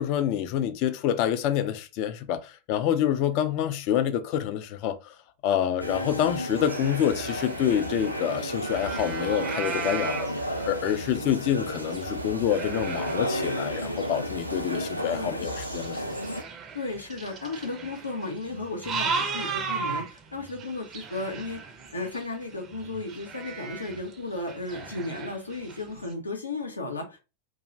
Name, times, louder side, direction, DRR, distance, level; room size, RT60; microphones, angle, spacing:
voice 1, 0.0-5.1 5.4-16.1, left 10 dB, 45° left, 0.3 m, -27 dB
sound 1, 5.8-16.4, equal, 90° right, 0.3 m, -32 dB
sound 2, 6.3-11.5 11.9-26.1, right 5 dB, 30° right, 0.5 m, -37 dB
voice 2, 15.1-15.5 16.7-21.6 21.9-27.2, left 2 dB, 80° left, 0.7 m, -34 dB
2.5 x 2.0 x 2.9 m
figure-of-eight pair, 90°, 0 cm